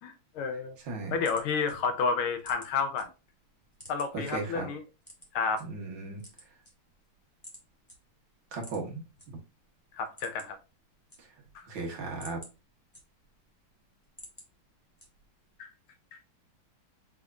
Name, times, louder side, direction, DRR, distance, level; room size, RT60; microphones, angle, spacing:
voice 1, 0.0-0.8 1.1-3.1 3.9-4.8 5.3-5.7 9.9-10.6 11.5-11.7 15.6-15.7 16.1-16.2, left 5 dB, 80° left, 1.5 m, -30 dB
voice 2, 0.8-1.1 4.1-4.7 5.6-6.5 8.5-9.4 11.2-11.3 11.6-12.4, right 3 dB, 60° right, 1.9 m, -37 dB
sound 1, 1.1-3.0 3.4-4.3 5.0-5.6 6.1-7.1 7.4-7.6 7.9-8.0 8.5-9.3 9.6-9.7 10.0-10.6 10.9-11.6 12.0-13.4 13.8-14.5 15.0-15.4, equal, 10° left, 1.5 m, -51 dB
5.7 x 3.5 x 2.4 m
omnidirectional pair, 2.4 m